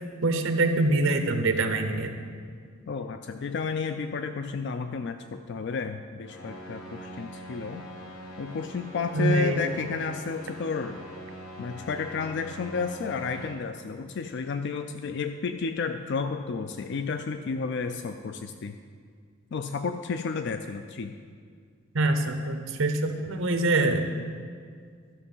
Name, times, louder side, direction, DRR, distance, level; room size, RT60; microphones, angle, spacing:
voice 1, 0.2-2.2 9.1-9.6 21.9-24.1, right 2 dB, 70° right, 6 dB, 0.9 m, -24 dB
voice 2, 2.9-7.8 8.4-11.0 11.6-18.7 19.5-21.1, left 5 dB, 55° left, 8 dB, 0.4 m, -32 dB
sound 1, 6.2-13.5, equal, 75° left, 1.4 m, -43 dB
12.0 x 6.0 x 5.5 m, 2.1 s
head